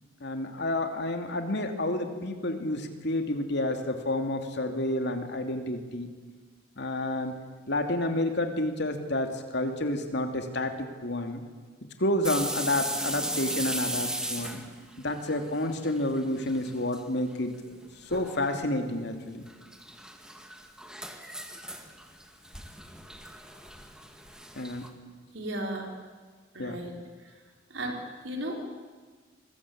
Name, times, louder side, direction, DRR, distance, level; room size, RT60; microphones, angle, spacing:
voice 1, 0.2-6.1 6.8-7.4 7.7-11.4 12.0-14.6 15.0-17.8 18.1-19.5 24.6-24.8 26.6-26.8, left 1 dB, 60° left, 5 dB, 2.7 m, -30 dB
sound 1, 12.2-16.1 16.3-17.0 17.3-17.4 18.1-18.5 19.5-24.9, right 1 dB, 5° right, 2.0 m, -36 dB
voice 2, 25.3-25.9 26.5-26.9 27.7-28.6, right 1 dB, 70° right, 2 dB, 4.4 m, -34 dB
26.0 x 20.5 x 8.7 m, 1.5 s
head